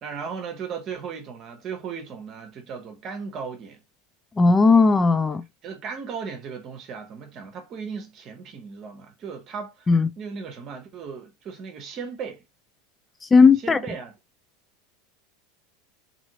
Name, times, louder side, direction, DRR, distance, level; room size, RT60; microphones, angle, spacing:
voice 1, 0.0-3.8 5.6-9.9 10.2-12.4 13.6-14.2, right 6 dB, 40° right, 0.9 m, -36 dB
voice 2, 4.4-5.4 9.9-10.1 13.3-13.8, left 4 dB, 20° left, 0.3 m, -16 dB
2.8 x 2.8 x 2.8 m
hypercardioid pair, 80°, 0 cm